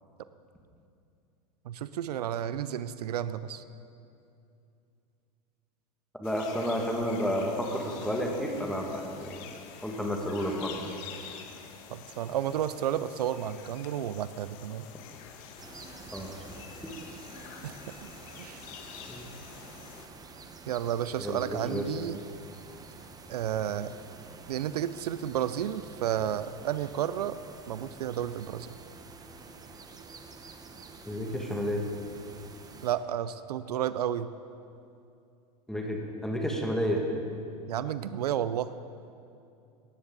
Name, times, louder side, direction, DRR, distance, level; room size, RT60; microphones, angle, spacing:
voice 1, 1.7-3.6 11.9-14.9 17.6-18.1 18.4-18.6 20.7-22.2 23.3-23.9 24.5-27.4 27.7-28.7 32.8-34.3 37.7-38.7, right 10 dB, 85° right, 14 dB, 0.5 m, -32 dB
sound 1, 6.2-20.1, left 7 dB, 60° left, 1.3 m, -47 dB
voice 2, 6.2-9.4 9.8-10.7 16.1-16.3 16.8-16.9 19.1-19.3 21.2-21.9 31.1-31.8 35.7-37.0, equal, ahead, 0 dB, 1.9 m, -31 dB
sound 2, 15.6-33.0, right 4 dB, 20° right, 1.0 m, -48 dB
17.5 x 10.0 x 4.0 m, 2.6 s
hypercardioid pair, 100°, 20 cm